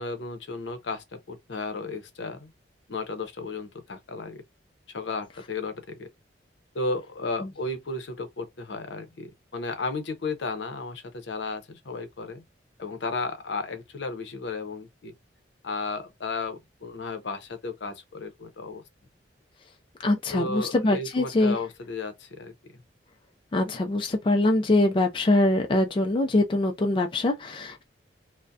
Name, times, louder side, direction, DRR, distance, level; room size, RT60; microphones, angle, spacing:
voice 1, 0.0-2.5 2.9-4.4 4.9-6.1 6.7-12.4 12.8-15.1 15.6-18.8 20.3-22.5, left 3 dB, 75° left, 0.6 m, -34 dB
voice 2, 20.0-21.6 23.5-27.8, left 2 dB, 25° left, 0.3 m, -23 dB
2.6 x 2.1 x 2.2 m
head